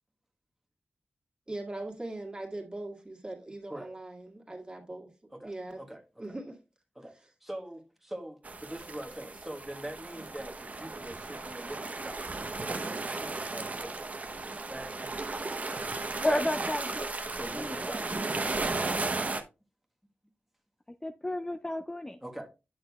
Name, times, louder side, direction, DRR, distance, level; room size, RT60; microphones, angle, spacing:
voice 1, 1.5-5.1 5.4-5.8 6.2-6.6, right 2 dB, 25° right, 1.8 m, -40 dB
voice 2, 5.3-6.4 6.9-7.1 7.4-15.2 17.2-18.5 22.2-22.5, right 1 dB, 5° right, 1.2 m, -44 dB
sound 1, 8.4-19.4, right 3 dB, 40° right, 0.8 m, -35 dB
voice 3, 16.2-17.1 17.5-17.8 21.0-22.2, left 1 dB, 15° left, 0.4 m, -31 dB
8.8 x 6.2 x 2.3 m
wide cardioid pair, 95°, 4 cm